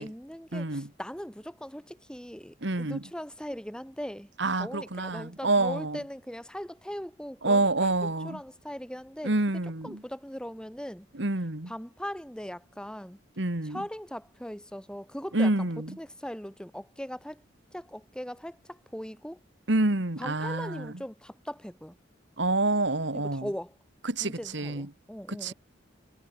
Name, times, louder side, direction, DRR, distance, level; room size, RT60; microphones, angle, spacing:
voice 1, 0.0-4.3 4.5-9.3 9.8-11.1 11.7-13.2 13.6-15.7 16.0-17.4 17.7-19.4 20.2-22.0 23.1-23.7 24.2-25.5, equal, 5° left, 4.6 m, -39 dB
voice 2, 0.5-0.9 2.6-3.0 4.4-6.0 7.4-8.4 9.2-10.0 11.1-11.7 13.4-13.8 15.3-15.9 19.7-20.9 22.4-23.5 24.0-24.9 25.3-25.5, right 2 dB, 65° right, 2.0 m, -27 dB
head